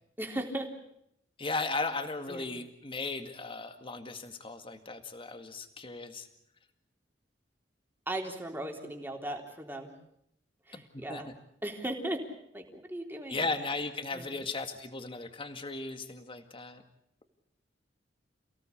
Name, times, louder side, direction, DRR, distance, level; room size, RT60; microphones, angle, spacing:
voice 1, 0.2-0.7 2.3-2.5 8.1-9.9 10.7-11.3 11.6-12.2 12.5-13.5 14.1-14.3, right 1 dB, 10° right, 2 dB, 3.7 m, -37 dB
voice 2, 1.4-6.3 10.7-11.3 13.3-16.8, left 3 dB, 30° left, 7 dB, 2.0 m, -36 dB
29.5 x 17.5 x 8.6 m, 0.75 s
head